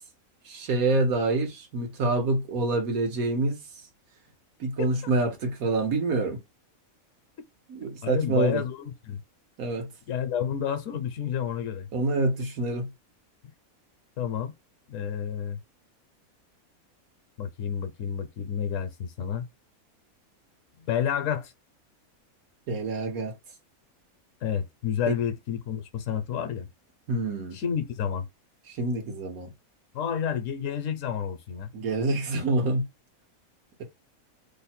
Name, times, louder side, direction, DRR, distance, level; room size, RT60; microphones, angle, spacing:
voice 1, 0.4-3.6 4.6-6.4 7.7-8.6 9.6-9.9 11.9-12.9 22.7-23.3 25.1-25.2 27.1-27.6 28.7-29.5 31.7-32.8, right 2 dB, 75° right, 1.4 m, -26 dB
voice 2, 8.0-9.2 10.1-11.9 14.2-14.5 14.9-15.6 17.4-19.5 20.8-21.5 24.4-26.7 27.5-28.3 29.9-31.7, left 8 dB, 70° left, 1.0 m, -30 dB
3.1 x 2.1 x 4.2 m
omnidirectional pair, 1.5 m